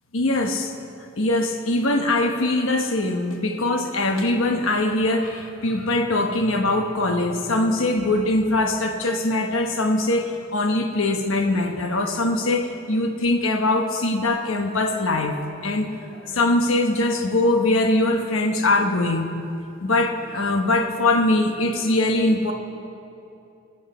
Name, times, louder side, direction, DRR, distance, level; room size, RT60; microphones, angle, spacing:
voice 1, 0.1-0.7 1.2-15.4 15.6-19.3 19.8-22.5, left 2 dB, 85° left, 4 dB, 1.1 m, -22 dB
23.5 x 9.2 x 4.9 m, 2.8 s
head